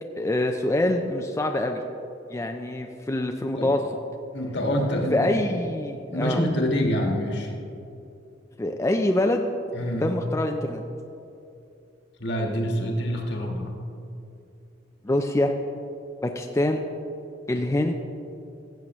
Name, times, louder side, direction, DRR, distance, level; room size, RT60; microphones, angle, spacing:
voice 1, 0.2-1.8 2.3-3.9 5.1-6.4 8.6-9.5 10.0-10.8 15.0-15.5 16.2-16.9 17.5-17.9, left 1 dB, 15° left, 4 dB, 0.4 m, -25 dB
voice 2, 4.3-5.3 6.1-7.5 9.7-10.1 12.2-13.7, equal, 65° left, 1 dB, 1.5 m, -26 dB
15.5 x 7.7 x 3.1 m, 2.7 s
head